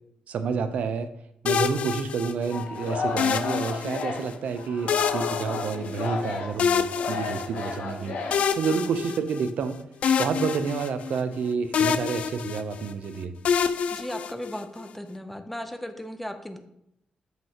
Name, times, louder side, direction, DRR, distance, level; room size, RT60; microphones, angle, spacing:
voice 1, 0.3-1.1 1.4-8.2 8.6-9.8 10.2-13.3, right 5 dB, 65° right, 10 dB, 0.5 m, -29 dB
sound 1, 1.5-2.6 3.2-4.3 4.9-6.2 6.6-7.8 8.3-9.7 10.0-11.4 11.7-12.9 13.5-14.8, left 7 dB, 55° left, 0.3 m, -27 dB
Singing, 2.5-8.9, left 4 dB, 75° left, 0.8 m, -33 dB
voice 2, 13.9-16.6, equal, 5° left, 7 dB, 0.5 m, -36 dB
7.5 x 5.4 x 2.9 m, 0.78 s
wide cardioid pair, 160°, 3 cm